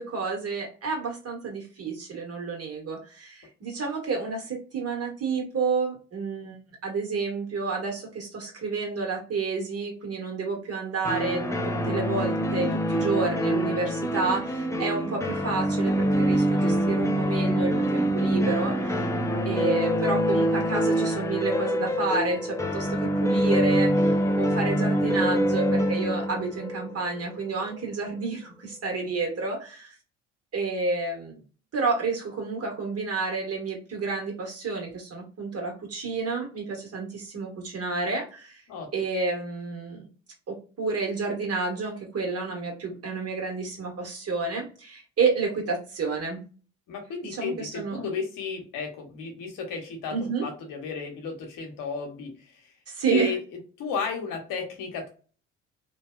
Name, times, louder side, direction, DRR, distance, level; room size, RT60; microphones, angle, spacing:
voice 1, 0.0-19.1 19.4-29.9 30.5-31.4 31.7-38.6 38.9-40.1 40.5-46.4 47.3-48.1 50.1-50.4 52.9-53.3, right 4 dB, 45° right, 1 dB, 1.4 m, -30 dB
sound 1, 11.1-27.8, equal, 10° left, 0.4 m, -25 dB
voice 2, 46.9-52.7 53.1-53.4 53.8-55.1, left 5 dB, 70° left, 3 dB, 1.0 m, -33 dB
2.6 x 2.2 x 2.3 m, 0.37 s
hypercardioid pair, 60°, 34 cm